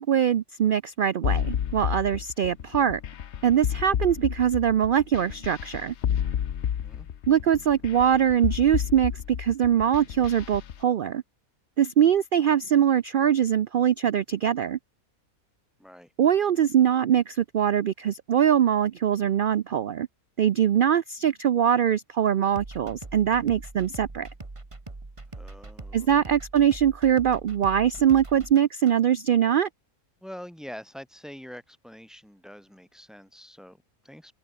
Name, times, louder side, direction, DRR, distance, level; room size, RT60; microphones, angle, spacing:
voice 1, 0.0-3.0 3.4-5.9 7.3-9.1 9.4-11.2 11.8-14.8 16.2-20.1 20.4-24.3 25.9-29.7, right 9 dB, 75° right, 0.5 m, -22 dB
sound 1, 1.2-10.8, left 9 dB, 55° left, 1.0 m, -30 dB
voice 2, 6.8-7.1 15.8-16.1 25.3-26.1 30.2-34.3, equal, ahead, 3.3 m, -45 dB
sound 2, 22.5-28.9, right 2 dB, 20° right, 1.7 m, -42 dB
open air
omnidirectional pair, 1.5 m